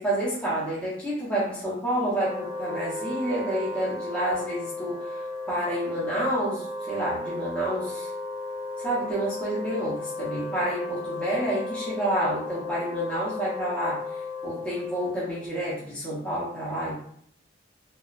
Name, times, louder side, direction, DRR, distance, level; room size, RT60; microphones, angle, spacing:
voice 1, 0.0-5.0 5.5-8.1 8.8-14.0 14.4-17.0, right 1 dB, 5° left, -9 dB, 0.7 m, -29 dB
Wind instrument woodwind instrument, 2.1-15.5, left 2 dB, 30° right, 0.8 m, -35 dB
2.7 x 2.1 x 2.3 m, 0.64 s
head